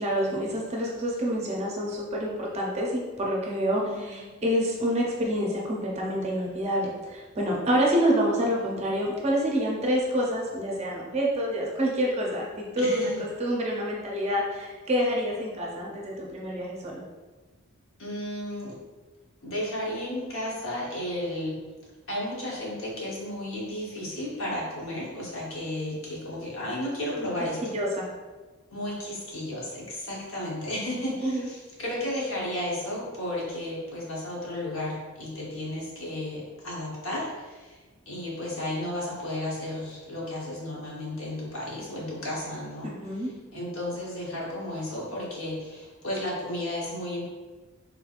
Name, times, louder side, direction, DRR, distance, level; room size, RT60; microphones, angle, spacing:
voice 1, 0.0-17.0 27.2-27.3 27.6-28.1 31.2-31.5 42.8-43.3, equal, 30° right, -2 dB, 0.6 m, -27 dB
voice 2, 3.8-4.4 12.8-13.2 18.0-18.7 19.4-21.6 22.1-27.8 28.7-37.8 38.1-47.3, left 1 dB, 65° left, -4 dB, 1.0 m, -33 dB
3.6 x 3.2 x 2.4 m, 1.3 s
head